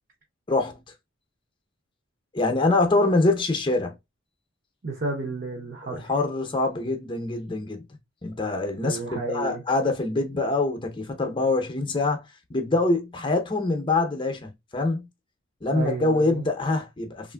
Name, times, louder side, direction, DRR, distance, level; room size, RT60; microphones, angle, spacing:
voice 1, 0.5-0.8 2.3-4.0 5.8-7.8 8.2-12.2 12.5-15.1 15.6-17.3, left 2 dB, 25° left, 0.6 m, -25 dB
voice 2, 4.8-6.1 8.8-9.6 15.7-16.5, right 3 dB, 45° right, 0.7 m, -32 dB
3.2 x 2.4 x 2.2 m
head